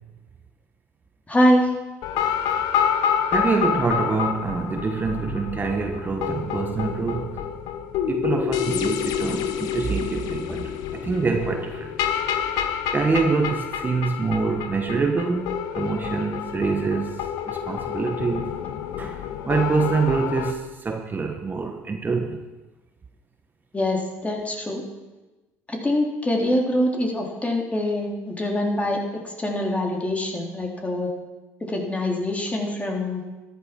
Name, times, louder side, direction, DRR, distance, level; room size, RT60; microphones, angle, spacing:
voice 1, 1.3-1.7 10.5-10.6 23.7-24.8 25.7-31.1 31.6-33.2, left 1 dB, 20° left, 0 dB, 3.6 m, -24 dB
sound 1, 2.0-20.5, left 8 dB, 70° left, 1.1 m, -28 dB
voice 2, 3.3-7.5 8.1-11.9 12.9-18.5 19.0-22.4, right 4 dB, 25° right, 4 dB, 1.5 m, -25 dB
13.5 x 11.5 x 6.0 m, 1.2 s
supercardioid pair, 75°, 7 cm